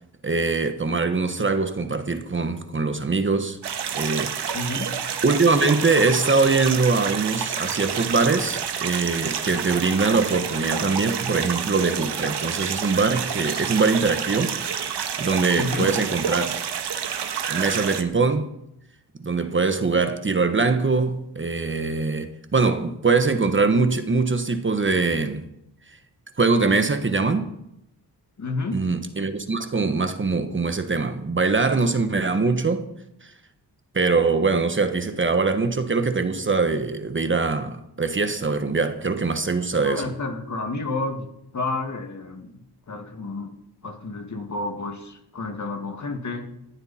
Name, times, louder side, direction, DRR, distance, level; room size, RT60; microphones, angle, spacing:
voice 1, 0.2-3.6 3.9-4.6 5.2-14.6 15.2-16.6 17.5-18.5 19.2-25.4 26.4-27.5 28.7-32.9 33.2-33.3 33.9-40.0, right 4 dB, 30° right, 1.2 m, -22 dB
sound 1, 3.6-18.0, right 7 dB, 80° right, 1.5 m, -29 dB
voice 2, 4.5-4.9 15.6-15.9 28.4-28.8 39.8-41.3 41.5-43.6 43.8-46.5, left 2 dB, 45° left, 2.2 m, -30 dB
19.0 x 14.5 x 4.3 m
wide cardioid pair, 140°, 40 cm